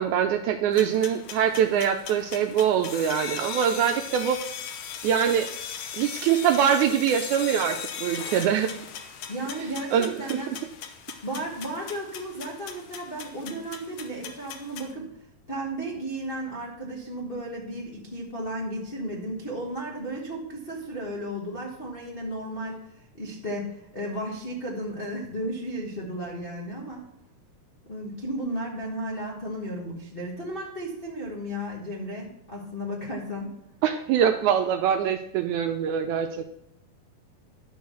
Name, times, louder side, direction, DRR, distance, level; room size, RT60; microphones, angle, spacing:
voice 1, 0.0-4.4 5.0-5.5 5.9-8.7 9.9-10.4 33.8-36.6, right 8 dB, 80° right, 6 dB, 1.8 m, -24 dB
sound 1, 0.7-14.9, left 8 dB, 90° left, 1.3 m, -39 dB
voice 2, 9.3-10.5 11.2-15.1 15.5-22.8 23.1-27.0 27.8-33.5, right 1 dB, 45° left, -3 dB, 0.7 m, -34 dB
11.0 x 4.7 x 6.8 m, 0.77 s
omnidirectional pair, 3.8 m